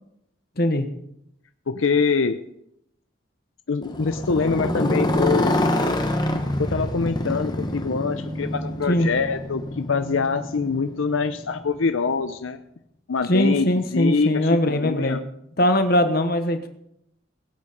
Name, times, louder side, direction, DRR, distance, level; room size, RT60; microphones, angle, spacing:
voice 1, 0.6-0.9 8.9-9.1 13.2-15.2 15.6-16.7, left 1 dB, 50° left, 8 dB, 1.3 m, -21 dB
voice 2, 1.7-2.4 3.7-5.6 6.6-12.6 13.1-15.2, left 4 dB, 85° left, 10 dB, 0.6 m, -24 dB
Motorcycle, 3.8-11.9, left 1 dB, 20° left, 1.2 m, -26 dB
19.5 x 8.4 x 5.1 m, 0.78 s
head